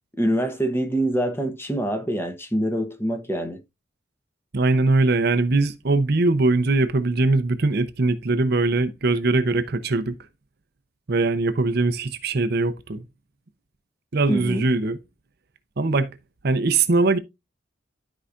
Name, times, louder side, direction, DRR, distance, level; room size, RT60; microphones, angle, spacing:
voice 1, 0.2-3.6 14.3-14.7, right 1 dB, 10° left, 1.0 m, -25 dB
voice 2, 4.5-10.2 11.1-13.0 14.1-15.0 15.8-16.2 16.4-17.2, right 3 dB, 55° right, 0.7 m, -21 dB
12.5 x 4.8 x 2.5 m
head